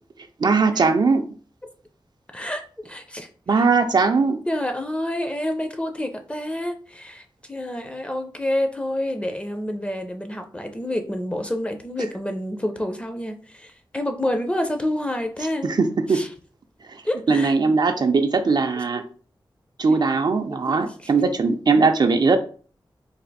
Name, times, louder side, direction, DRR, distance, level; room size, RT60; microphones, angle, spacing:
voice 1, 0.4-1.3 3.5-4.4 15.6-16.2 16.9-17.0 17.3-19.0 19.8-22.4, right 4 dB, 55° right, 6 dB, 0.4 m, -19 dB
voice 2, 2.3-3.6 4.5-7.2 7.5-15.8 16.1-16.3 17.0-17.5 18.8-19.0 20.5-21.1, left 1 dB, 15° left, 6 dB, 0.5 m, -28 dB
3.3 x 2.5 x 4.0 m, 0.42 s
wide cardioid pair, 85°, 9 cm